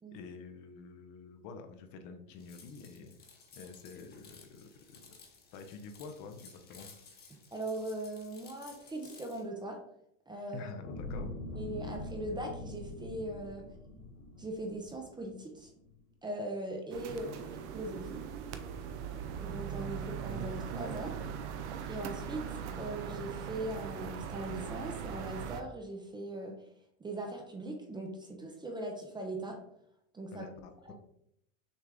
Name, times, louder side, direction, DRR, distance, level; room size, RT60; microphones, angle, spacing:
voice 1, 0.1-3.2 3.5-5.2 5.5-6.9 10.5-11.4 17.1-17.4 30.3-30.9, left 4 dB, 50° left, 7 dB, 0.7 m, -48 dB
sound 1, 2.4-9.4, left 4 dB, 25° left, 1.1 m, -56 dB
voice 2, 7.5-9.8 10.3-10.7 11.6-13.7 14.4-15.7 16.2-17.3 17.7-18.2 19.4-21.1 21.9-26.5 27.0-29.6 30.1-30.5 30.9-31.0, right 1 dB, 10° right, 2 dB, 0.6 m, -40 dB
sound 2, 10.8-15.3 15.8-15.9, left 1 dB, 90° left, 1.8 m, -43 dB
sound 3, 16.9-25.6, right 7 dB, 70° right, 0.7 m, -40 dB
6.5 x 2.4 x 3.4 m, 0.76 s
supercardioid pair, 120°, 37 cm